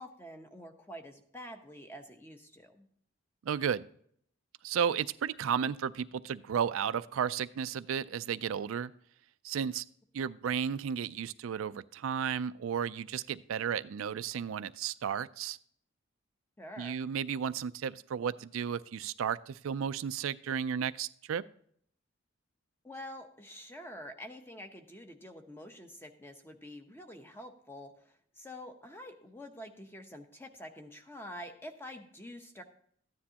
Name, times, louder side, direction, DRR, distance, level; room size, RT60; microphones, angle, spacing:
voice 1, 0.0-2.9 16.6-17.0 22.8-32.6, equal, 10° left, 5 dB, 0.8 m, -47 dB
voice 2, 3.4-3.8 4.6-8.9 9.4-9.8 10.1-15.6 16.8-21.4, right 7 dB, 80° right, 14 dB, 0.4 m, -33 dB
13.5 x 9.6 x 2.9 m, 0.63 s
head